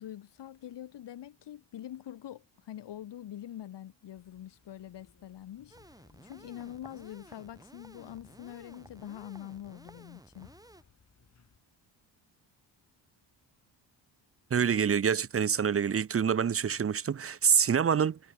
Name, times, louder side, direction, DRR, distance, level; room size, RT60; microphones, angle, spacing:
voice 1, 0.0-5.8 6.2-10.5, left 11 dB, 65° left, 2.2 m, -44 dB
sound 1, 4.2-11.6, left 6 dB, 35° left, 6.8 m, -63 dB
sound 2, 5.7-10.8, right 1 dB, 10° right, 7.0 m, -55 dB
voice 2, 14.5-18.2, right 7 dB, 30° right, 0.8 m, -26 dB
cardioid pair, 115°, 44 cm